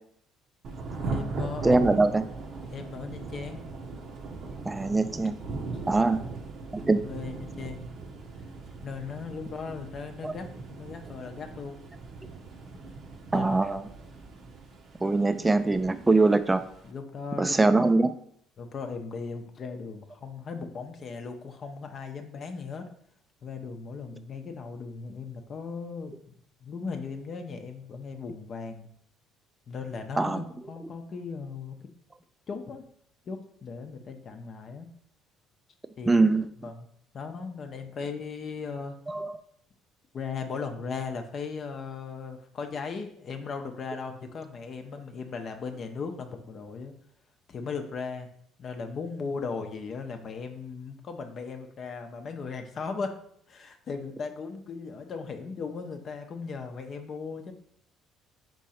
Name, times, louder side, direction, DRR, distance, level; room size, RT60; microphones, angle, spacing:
Thunder / Rain, 0.6-16.9, right 3 dB, 55° right, 0.7 m, -39 dB
voice 1, 0.9-1.9 2.7-3.6 5.8-6.3 6.8-7.9 8.8-11.8 13.3-13.6 16.8-17.8 18.6-22.9 23.4-28.9 29.7-31.8 32.5-32.8 33.3-34.9 36.0-36.2 36.6-36.9 37.1-38.9 40.1-46.9 47.5-48.3 48.6-53.2 53.5-57.5, left 5 dB, 45° left, 5 dB, 0.6 m, -37 dB
voice 2, 1.6-2.2 4.7-5.4 5.9-6.2 6.7-7.0 10.2-10.3 13.3-13.8 15.0-16.6 17.4-18.1 30.2-30.4 36.1-36.5 39.1-39.4, right 3 dB, 15° right, 11 dB, 0.3 m, -22 dB
3.7 x 3.0 x 4.2 m, 0.67 s
supercardioid pair, 80°, 0 cm